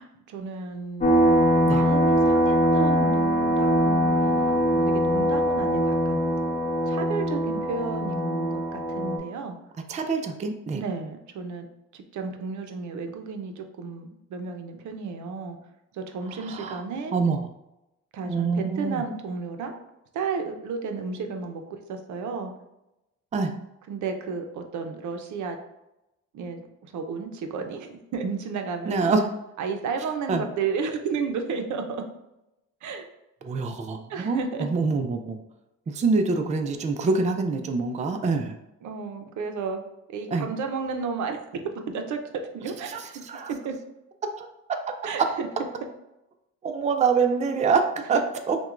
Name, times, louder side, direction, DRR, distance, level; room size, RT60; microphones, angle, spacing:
voice 1, 0.0-6.3 6.9-9.6 10.7-11.7 11.9-15.6 15.9-17.1 18.1-19.8 20.1-21.6 21.9-22.5 23.9-25.6 26.3-29.1 29.6-32.0 32.8-33.1 34.1-34.7 38.8-39.8 40.1-41.4 41.9-42.2 42.5-43.2 43.5-43.7 45.0-45.7 48.1-48.2, right 5 dB, 70° right, 5 dB, 0.6 m, -32 dB
sound 1, 1.0-9.2, equal, 25° left, 1.0 m, -22 dB
voice 2, 9.9-10.8 16.5-16.8 17.1-17.4 18.3-19.0 23.3-23.5 28.9-29.2 30.3-30.4 33.4-35.4 35.9-38.5 40.3-40.5 43.2-43.5 44.2-44.8 45.2-45.3 46.6-48.6, right 4 dB, 25° right, 5 dB, 0.4 m, -25 dB
5.9 x 2.2 x 2.4 m, 0.91 s
cardioid pair, 90°, 30 cm